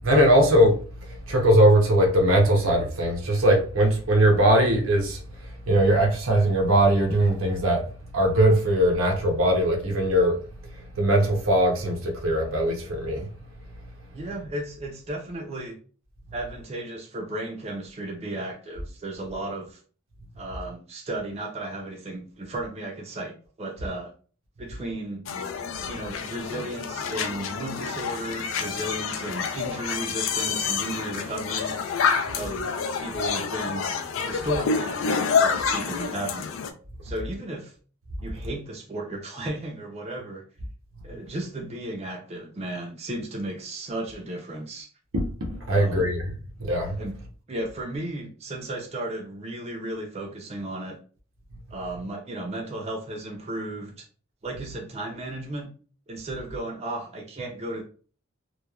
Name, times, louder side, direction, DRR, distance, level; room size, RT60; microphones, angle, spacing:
voice 1, 0.0-13.3 45.1-46.3 46.6-47.0, right 1 dB, 80° right, 0.7 m, -21 dB
voice 2, 14.1-15.8 16.3-19.8 20.4-24.1 24.6-25.3 25.8-31.8 32.3-33.9 34.2-36.5 37.0-37.7 38.2-40.4 41.0-44.9 45.7-46.0 47.0-47.1 47.5-51.0 51.7-54.1 54.4-55.7 56.1-57.8, right 1 dB, 30° right, 0.4 m, -34 dB
sound 1, 25.3-36.7, left 6 dB, 75° left, 0.4 m, -28 dB
3.0 x 2.2 x 2.3 m
head